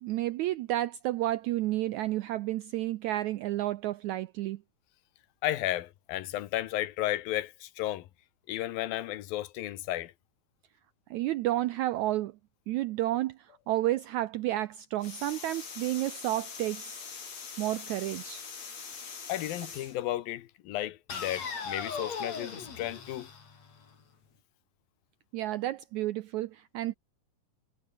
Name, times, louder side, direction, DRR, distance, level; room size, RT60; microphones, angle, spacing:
voice 1, 0.0-4.6 11.1-12.3 12.7-16.8 17.6-18.4 25.3-26.9, right 15 dB, 90° right, 1.7 m, -31 dB
voice 2, 5.4-8.1 8.5-10.1 19.3-23.3, left 14 dB, 85° left, 2.9 m, -33 dB
sound 1, 15.0-20.0 21.1-24.0, left 5 dB, 50° left, 4.8 m, -41 dB
omnidirectional pair, 4.1 m